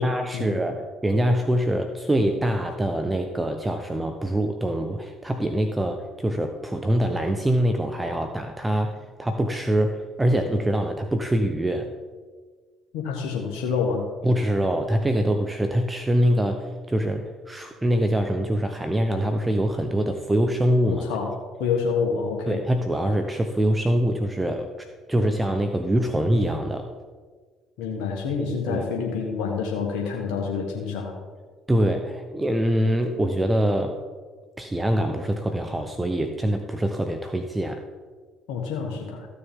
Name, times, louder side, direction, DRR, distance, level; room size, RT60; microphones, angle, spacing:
voice 1, 0.0-11.9 14.2-21.0 22.5-26.9 28.7-28.8 31.7-34.0 34.6-37.8, right 1 dB, 15° right, 6 dB, 0.8 m, -24 dB
voice 2, 12.9-14.1 20.9-22.6 27.8-31.2 38.5-39.3, left 5 dB, 75° left, 0 dB, 1.2 m, -27 dB
14.0 x 6.7 x 3.6 m, 1.5 s
hypercardioid pair, 60°, 0 cm